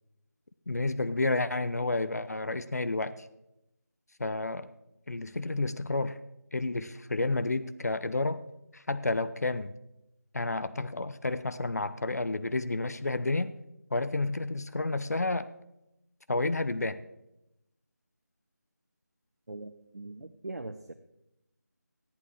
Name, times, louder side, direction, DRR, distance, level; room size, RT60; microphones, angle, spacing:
voice 1, 0.7-3.3 4.2-4.7 5.1-6.2 6.5-8.4 8.7-9.7 10.3-13.5 13.9-15.5 16.3-17.0, left 2 dB, 60° left, 13 dB, 0.7 m, -30 dB
voice 2, 19.5-20.9, right 2 dB, 65° right, 7 dB, 0.9 m, -41 dB
14.5 x 11.0 x 4.8 m, 0.88 s
figure-of-eight pair, 170°, 10 cm